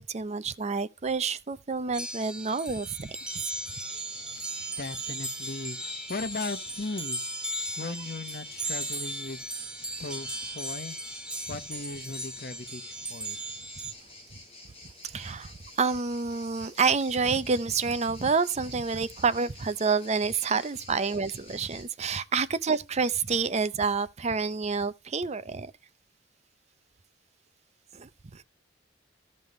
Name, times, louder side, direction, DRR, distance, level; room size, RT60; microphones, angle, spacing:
voice 1, 0.0-3.2 15.0-25.7 27.9-28.4, right 5 dB, 40° right, 0.6 m, -28 dB
sound 1, 1.9-13.9, right 1 dB, 5° right, 1.1 m, -37 dB
sound 2, 3.1-21.8, left 2 dB, 30° left, 6.5 m, -50 dB
voice 2, 4.8-7.2 7.8-9.4 10.0-11.0 11.5-12.8 13.1-13.6, left 3 dB, 55° left, 1.0 m, -37 dB
15.5 x 5.4 x 3.1 m
head